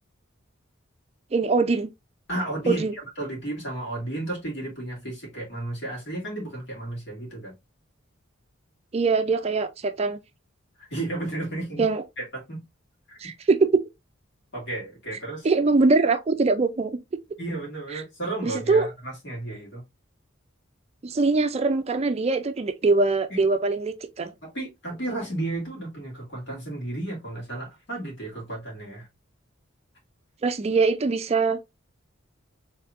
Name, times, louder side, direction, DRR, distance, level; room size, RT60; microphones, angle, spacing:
voice 1, 1.3-1.9 2.7-2.9 8.9-10.2 11.8-12.0 13.2-13.7 15.4-16.9 18.4-18.9 21.0-24.3 30.4-31.6, right 3 dB, 30° right, 0.4 m, -22 dB
voice 2, 2.3-7.5 10.8-11.9 12.2-12.6 13.1-13.2 14.5-15.5 17.4-19.8 23.3-23.4 24.4-29.1, right 2 dB, 60° left, 2.5 m, -33 dB
4.5 x 3.5 x 2.4 m
head